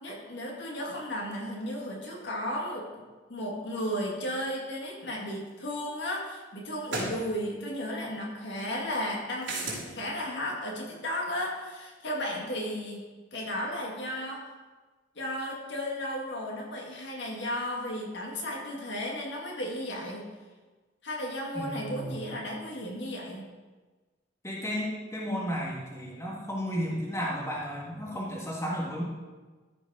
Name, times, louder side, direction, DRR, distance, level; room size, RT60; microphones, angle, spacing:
voice 1, 0.0-2.9 3.3-9.5 9.9-13.0 13.3-14.4 15.2-20.3 21.0-23.4, equal, 65° left, -2 dB, 2.0 m, -34 dB
sound 1, 5.5-5.6 6.9-7.2 9.4-9.9, right 2 dB, 70° right, 3.5 m, -32 dB
voice 2, 21.5-22.3 24.4-29.0, equal, 15° left, -4 dB, 1.7 m, -33 dB
13.5 x 5.3 x 4.9 m, 1.3 s
head